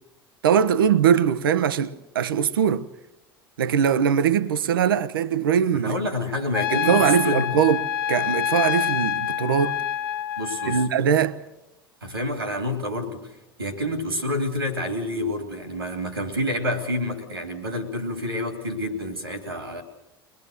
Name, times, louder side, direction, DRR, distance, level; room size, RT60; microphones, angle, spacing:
voice 1, 0.4-2.9 3.6-6.0 6.7-9.8 10.7-11.4, right 8 dB, 75° right, 0.8 m, -21 dB
voice 2, 5.7-7.7 10.4-10.8 12.0-13.3 13.6-19.8, left 1 dB, 90° right, 2.7 m, -28 dB
Trumpet, 6.5-10.9, left 10 dB, 70° left, 0.7 m, -26 dB
22.5 x 20.5 x 6.5 m
figure-of-eight pair, 70°, 12 cm